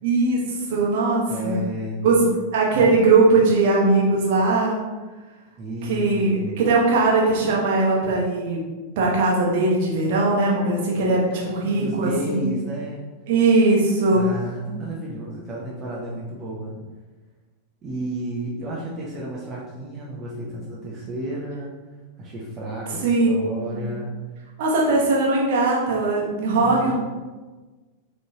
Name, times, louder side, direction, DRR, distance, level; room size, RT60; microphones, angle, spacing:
voice 1, 0.0-1.6 2.0-2.3 2.5-4.8 5.9-8.6 9.0-12.5 13.3-14.2 23.0-23.8 24.6-26.9, right 3 dB, 50° right, -3 dB, 0.9 m, -20 dB
voice 2, 1.3-2.2 5.6-6.6 11.3-13.1 13.9-16.8 17.8-21.7 22.2-24.1 26.6-26.9, right 1 dB, 25° right, -4 dB, 0.7 m, -32 dB
3.8 x 3.0 x 2.7 m, 1.3 s
figure-of-eight pair, 90°, 0 cm